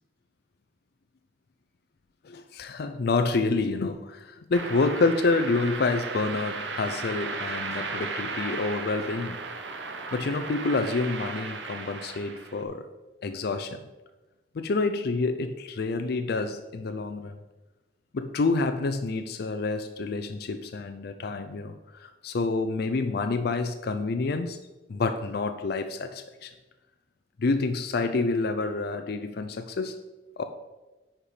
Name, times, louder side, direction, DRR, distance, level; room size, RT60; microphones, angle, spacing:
voice 1, 2.2-9.4 10.1-12.9 13.2-13.8 14.5-17.4 18.1-21.7 22.0-24.6 24.9-26.5 27.4-30.0 30.4-30.5, left 3 dB, 60° left, 8 dB, 0.4 m, -28 dB
sound 1, 4.5-12.6, right 4 dB, 85° right, 0.9 m, -35 dB
9.9 x 4.4 x 5.0 m, 1.1 s
head